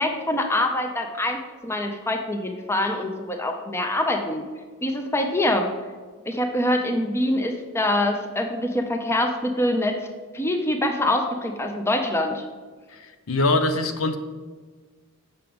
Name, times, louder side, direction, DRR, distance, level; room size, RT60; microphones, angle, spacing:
voice 1, 0.0-4.4 4.8-5.7 6.2-10.1 10.3-12.4, left 1 dB, 10° left, 4 dB, 0.6 m, -24 dB
voice 2, 12.9-14.2, left 2 dB, 75° left, 8 dB, 0.7 m, -23 dB
7.5 x 5.9 x 5.2 m, 1.5 s
head